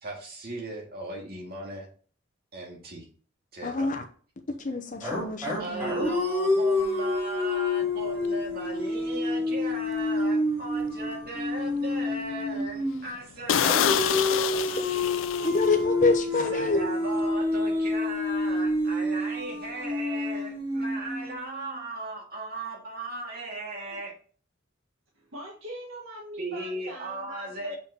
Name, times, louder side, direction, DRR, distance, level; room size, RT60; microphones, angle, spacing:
voice 1, 0.0-1.9 2.5-3.1 3.5-4.0 5.6-14.2 16.5-24.1 26.4-27.8, right 2 dB, 50° right, 0 dB, 2.2 m, -37 dB
voice 2, 3.6-4.0 4.6-6.1 15.4-16.9, left 3 dB, 40° left, 5 dB, 0.7 m, -27 dB
sound 1, 5.0-13.1 13.6-21.7, left 2 dB, 15° right, 2.6 m, -28 dB
sound 2, 8.2-8.4 8.9-9.1 9.6-9.7 10.1-10.2 10.7-11.3 11.7-11.8 12.2-12.3 12.6-12.7 13.1-13.2 13.5-16.0 16.3-16.5, left 10 dB, 70° left, 0.4 m, -27 dB
voice 3, 25.2-27.8, right 1 dB, 90° right, -2 dB, 1.9 m, -41 dB
7.0 x 5.6 x 2.9 m, 0.42 s
head